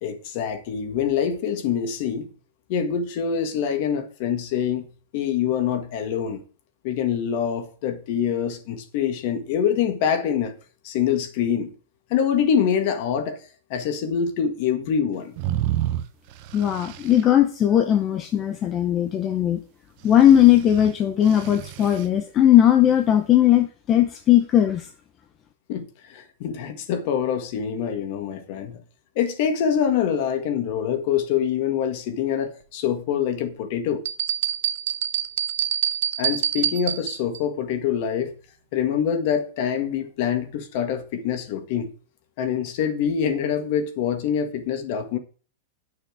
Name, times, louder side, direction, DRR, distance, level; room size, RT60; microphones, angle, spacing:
voice 1, 0.0-2.3 2.7-4.9 5.1-6.4 6.8-10.6 10.8-11.7 12.1-13.4 13.7-15.3 25.7-28.8 29.1-34.0 36.2-38.3 38.7-41.9 42.4-45.2, left 8 dB, 40° left, 1.6 m, -25 dB
sound 1, 15.4-17.2 20.0-22.1, right 13 dB, 35° right, 0.8 m, -30 dB
voice 2, 16.5-19.6 20.0-24.9, left 11 dB, 20° left, 0.7 m, -18 dB
sound 2, 34.1-37.4, right 10 dB, 65° right, 0.8 m, -26 dB
9.8 x 6.5 x 6.3 m
supercardioid pair, 170°, 0 cm